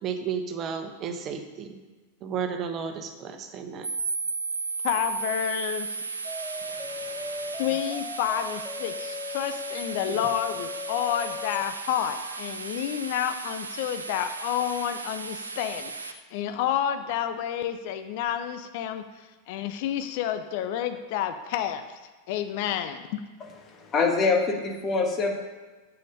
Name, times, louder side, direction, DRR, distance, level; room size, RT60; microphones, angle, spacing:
voice 1, 0.0-1.8 2.2-3.9 10.1-10.2, right 7 dB, 30° right, 7 dB, 1.1 m, -33 dB
sound 1, 3.8-16.1, right 4 dB, 75° right, 0.7 m, -35 dB
voice 2, 4.8-6.0 7.6-21.8 22.3-23.2, left 10 dB, 50° left, 9 dB, 0.6 m, -30 dB
sound 2, 6.2-12.4, left 4 dB, 5° left, 1.0 m, -38 dB
voice 3, 6.7-7.4 23.7-25.3, left 4 dB, 25° left, 3 dB, 1.5 m, -26 dB
9.0 x 7.2 x 5.3 m, 1.3 s
figure-of-eight pair, 90°, 0 cm